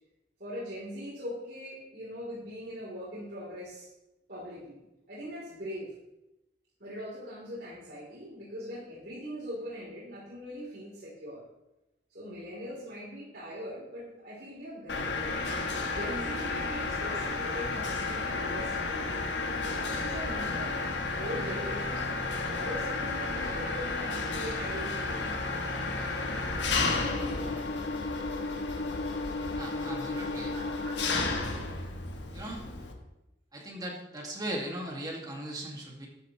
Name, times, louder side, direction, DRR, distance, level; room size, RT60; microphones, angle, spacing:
voice 1, 0.4-3.9 4.3-4.8 5.1-5.9 6.8-11.4 12.1-15.3 15.9-19.2 19.6-20.8 21.2-22.2 22.5-25.4 30.5-31.7, equal, 60° right, -9 dB, 3.6 m, -41 dB
Mechanisms, 14.9-32.9, left 3 dB, 80° left, 1.4 m, -32 dB
voice 2, 29.6-30.5 31.1-31.3 32.3-32.6 33.5-36.1, right 1 dB, 20° right, -1 dB, 2.2 m, -38 dB
12.5 x 9.2 x 3.2 m, 0.93 s
head